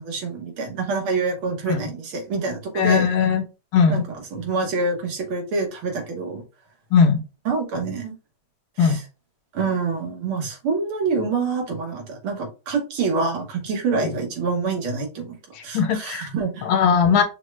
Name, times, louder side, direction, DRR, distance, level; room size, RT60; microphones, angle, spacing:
voice 1, 0.0-3.1 3.9-6.4 7.5-8.1 8.8-9.0 9.5-15.4 15.6-16.7, right 4 dB, 85° right, 2 dB, 2.1 m, -26 dB
voice 2, 2.8-3.4 3.7-4.0 6.9-7.2 8.8-9.0 15.7-16.3 16.7-17.2, left 6 dB, 75° left, 6 dB, 1.5 m, -18 dB
5.8 x 2.3 x 3.2 m, 0.30 s
omnidirectional pair, 2.2 m